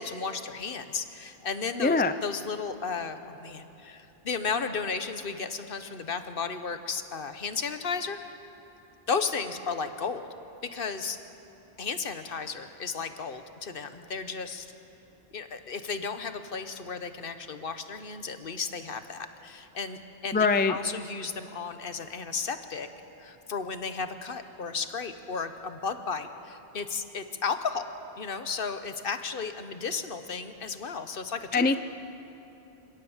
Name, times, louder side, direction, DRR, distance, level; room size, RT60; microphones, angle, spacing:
voice 1, 0.0-8.2 9.1-10.3 10.7-11.2 11.8-14.7 15.3-22.9 23.2-27.8 28.2-31.8, left 5 dB, 60° left, 9 dB, 1.2 m, -34 dB
voice 2, 1.8-2.1 20.3-20.8 31.5-31.8, left 4 dB, 15° left, 11 dB, 0.4 m, -22 dB
25.0 x 17.0 x 7.2 m, 2.9 s
omnidirectional pair, 1.1 m